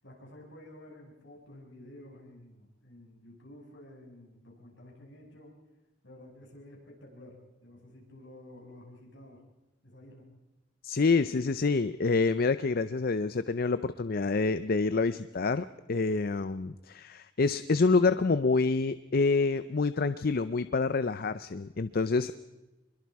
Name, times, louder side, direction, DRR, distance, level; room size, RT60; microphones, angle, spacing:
voice 1, 0.0-5.6 6.0-9.4 9.8-10.3, left 1 dB, 70° left, -1 dB, 6.4 m, -51 dB
voice 2, 10.8-22.3, left 4 dB, 55° left, 13 dB, 0.6 m, -27 dB
25.5 x 21.5 x 4.8 m, 1.1 s
head